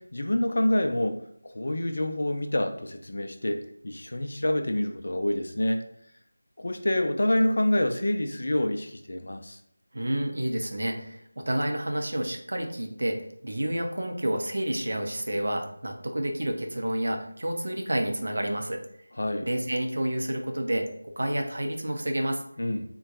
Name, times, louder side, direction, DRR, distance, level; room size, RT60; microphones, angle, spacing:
voice 1, 0.0-5.8 6.6-9.6 19.2-19.5 22.6-22.8, left 1 dB, 60° left, 6 dB, 0.4 m, -27 dB
voice 2, 9.9-18.8 19.4-22.4, right 1 dB, 60° right, 3 dB, 0.5 m, -29 dB
3.6 x 2.2 x 2.9 m, 0.67 s
figure-of-eight pair, 165°, 0 cm